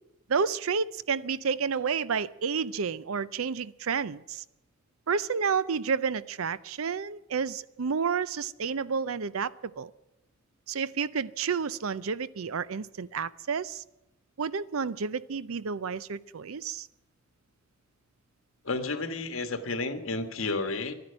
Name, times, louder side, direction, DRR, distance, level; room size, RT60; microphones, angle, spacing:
voice 1, 0.3-4.4 5.1-9.9 10.7-13.8 14.4-16.9, right 6 dB, 80° right, 18 dB, 0.6 m, -30 dB
voice 2, 18.6-20.9, left 3 dB, 70° left, 8 dB, 1.5 m, -31 dB
12.0 x 10.5 x 9.9 m, 0.91 s
head